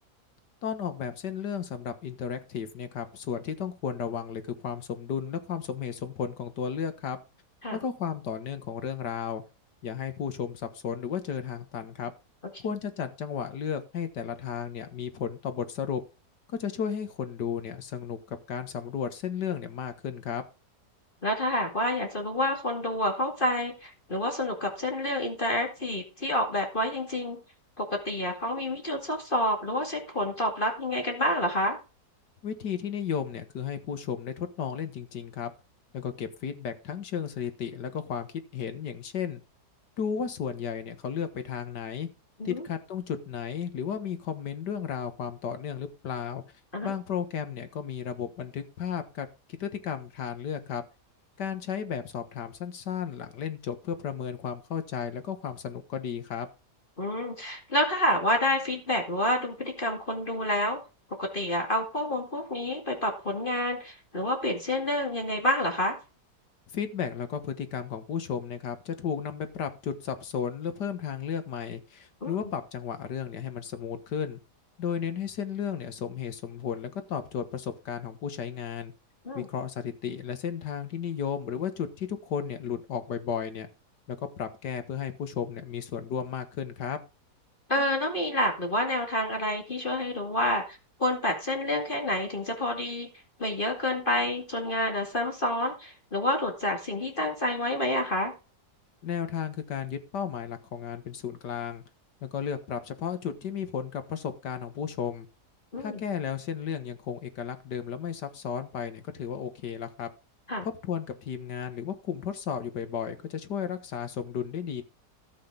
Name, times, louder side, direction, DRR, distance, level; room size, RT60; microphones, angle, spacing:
voice 1, 0.6-7.2 7.7-9.4 9.8-12.1 12.6-16.0 16.6-20.4 32.4-35.5 35.9-38.3 38.5-39.4 40.0-42.1 42.5-46.4 46.8-50.8 51.4-56.5 66.7-74.4 74.8-78.9 79.3-83.7 84.1-87.0 99.0-101.8 102.2-105.3 105.8-110.1 110.6-114.8, left 7 dB, 85° left, 10 dB, 2.0 m, -34 dB
voice 2, 21.2-27.4 27.8-31.8 42.4-42.6 46.7-46.9 57.0-60.8 61.2-66.0 72.2-72.3 79.3-79.5 87.7-93.1 93.4-98.3 105.7-106.0 110.5-110.7, left 1 dB, 30° left, 3 dB, 2.4 m, -28 dB
13.0 x 7.7 x 3.9 m, 0.30 s
omnidirectional pair, 1.8 m